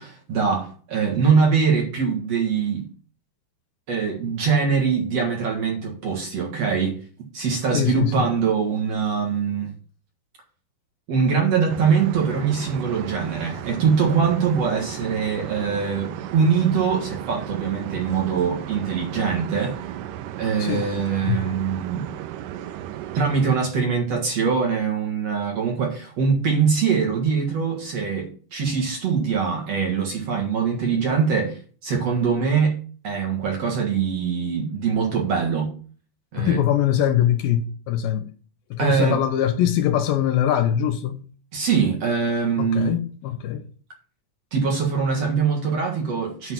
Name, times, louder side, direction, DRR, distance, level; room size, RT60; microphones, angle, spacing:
voice 1, 0.0-2.8 3.9-7.0 7.3-9.7 11.1-19.8 20.4-22.1 23.1-32.8 33.0-35.7 36.3-36.6 38.8-39.2 41.5-42.9 44.5-46.5, right 6 dB, 50° right, 2.4 m, -23 dB
voice 2, 7.7-8.3 20.6-20.9 21.2-21.5 36.4-38.3 38.7-41.3 42.6-43.6, left 10 dB, 80° left, 2.3 m, -22 dB
sound 1, 11.7-23.5, right 11 dB, 85° right, 1.9 m, -35 dB
9.6 x 4.1 x 7.2 m
omnidirectional pair, 4.4 m